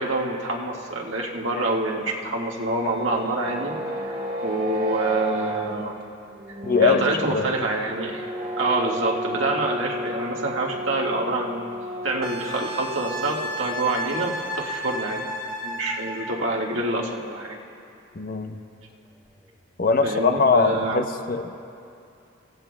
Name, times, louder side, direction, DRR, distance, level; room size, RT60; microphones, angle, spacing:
voice 1, 0.0-3.7 4.0-5.9 6.8-8.2 8.6-11.6 12.0-15.2 15.6-17.6 20.0-21.0, right 2 dB, 70° right, -1 dB, 1.6 m, -26 dB
sound 1, 2.5-13.7, equal, 50° right, 1.6 m, -33 dB
voice 2, 6.6-7.5 18.1-18.6 19.8-21.5, left 4 dB, 45° left, 7 dB, 0.7 m, -22 dB
Wind instrument woodwind instrument, 12.2-16.5 19.1-19.3, right 1 dB, 5° left, 1.8 m, -33 dB
27.5 x 16.0 x 2.2 m, 2.6 s
head